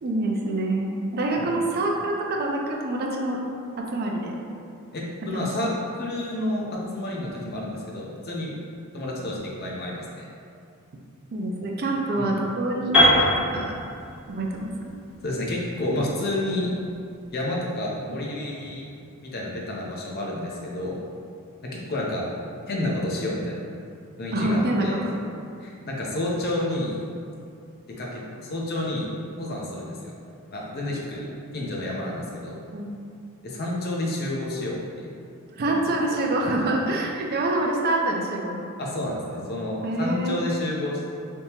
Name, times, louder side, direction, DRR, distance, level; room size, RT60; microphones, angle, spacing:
voice 1, 0.0-3.4 3.8-4.4 5.3-5.5 11.3-13.7 14.3-14.9 24.3-25.2 30.9-31.0 32.7-32.9 35.6-38.6 39.8-40.5, right 1 dB, 45° right, 0 dB, 0.4 m, -26 dB
voice 2, 4.9-8.5 8.9-10.2 12.2-12.4 15.2-16.7 17.3-18.9 19.2-21.0 21.7-22.3 22.7-23.6 24.2-25.0 25.6-26.9 27.9-29.1 29.4-30.1 30.5-32.6 33.4-35.1 35.7-35.8 36.1-36.2 38.8-41.1, left 1 dB, 45° left, -3 dB, 0.6 m, -30 dB
Piano, 12.9-16.9, left 1 dB, 5° right, 1.2 m, -23 dB
3.4 x 2.8 x 2.9 m, 2.4 s
head